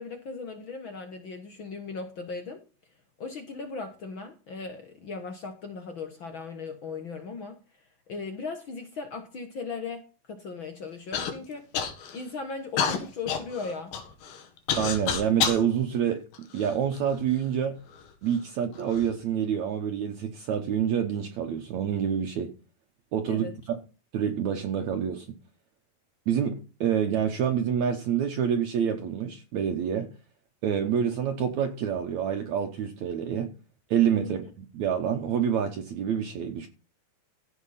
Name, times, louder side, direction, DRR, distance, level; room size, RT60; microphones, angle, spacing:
voice 1, 0.0-2.6 3.2-7.6 8.1-10.0 10.3-11.7 12.1-13.9 23.3-23.6 34.2-34.4, left 4 dB, 55° left, 1.4 m, -37 dB
Human voice / Cough, 11.1-11.3 11.7-12.2 12.8-15.6 16.3-17.2 17.9-18.0 18.7-19.1, left 7 dB, 90° left, 3.6 m, -29 dB
voice 2, 14.8-17.8 18.2-22.5 23.1-23.8 24.1-25.4 26.3-30.1 30.6-33.5 33.9-36.7, right 8 dB, 65° right, 2.2 m, -27 dB
15.5 x 5.8 x 5.7 m
omnidirectional pair, 4.0 m